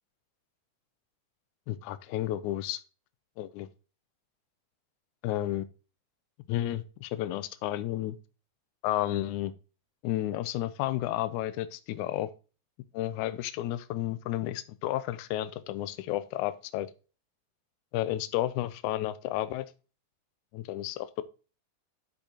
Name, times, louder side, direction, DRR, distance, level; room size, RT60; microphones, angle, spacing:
voice 1, 1.7-2.8 3.4-3.7 5.2-5.6 6.5-8.2 8.8-9.5 10.0-12.3 12.9-16.9 17.9-19.7 20.5-21.2, left 14 dB, 85° left, 12 dB, 2.0 m, -32 dB
12.0 x 5.4 x 2.8 m, 0.34 s
omnidirectional pair, 3.4 m